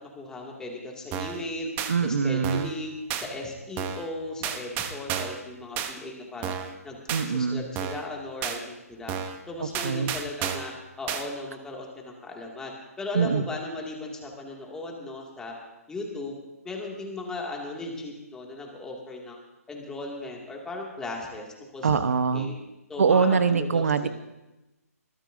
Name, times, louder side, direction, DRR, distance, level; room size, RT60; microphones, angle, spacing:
voice 1, 0.2-1.7 2.0-6.6 6.8-7.0 7.3-9.1 9.5-10.7 11.0-12.7 13.0-15.5 15.9-16.3 16.6-19.4 19.7-22.0 22.3-22.5 22.9-24.1, left 2 dB, 5° left, -1 dB, 2.4 m, -37 dB
sound 1, 1.1-1.4 1.8-1.9 2.4-2.8 3.1-3.3 3.8-4.1 4.4-5.4 5.8-5.9 6.4-6.8 7.1-7.3 7.8-8.1 8.4-8.6 9.1-9.4 9.7-10.7 11.1-11.2, right 9 dB, 20° right, 1.0 m, -31 dB
voice 2, 1.9-2.7 7.1-7.6 9.6-10.1 13.1-13.4 21.8-22.5 23.0-24.1, right 5 dB, 65° right, 12 dB, 1.1 m, -23 dB
22.5 x 14.5 x 2.7 m, 1.0 s
figure-of-eight pair, 140°, 9 cm